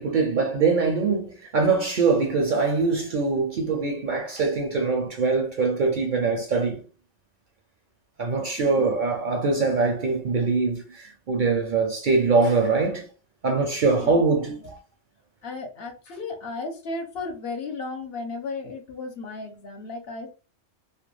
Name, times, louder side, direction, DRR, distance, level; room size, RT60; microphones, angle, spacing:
voice 1, 0.0-6.8 8.2-13.1 13.4-14.6, right 4 dB, 60° right, 0.6 m, -23 dB
voice 2, 8.6-9.0 13.9-14.2 15.4-20.3, left 3 dB, 65° left, 0.8 m, -35 dB
2.4 x 2.2 x 3.1 m
omnidirectional pair, 1.2 m